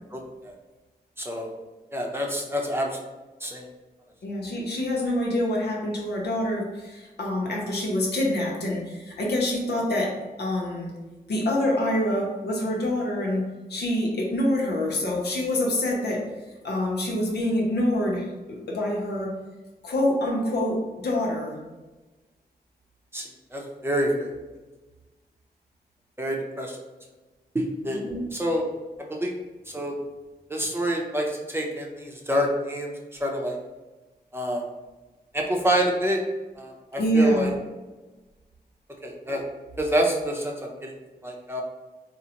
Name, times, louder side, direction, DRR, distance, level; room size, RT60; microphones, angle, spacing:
voice 1, 0.1-0.5 1.2-1.5 1.9-2.9 3.4-3.6 23.1-24.3 26.2-26.8 27.5-28.0 28.3-28.7 29.1-29.4 29.7-29.9 30.5-32.9 33.2-33.6 34.3-34.6 35.3-36.2 36.6-37.5 39.0-39.4 39.8-40.9 41.2-41.6, equal, 15° right, -1 dB, 0.7 m, -27 dB
voice 2, 4.2-10.9 11.3-13.4 13.7-16.2 16.6-19.3 19.8-21.6 27.9-28.3 37.0-37.5, left 1 dB, 85° left, -2 dB, 0.8 m, -26 dB
3.8 x 2.1 x 2.8 m, 1.2 s
cardioid pair, 55°, 17 cm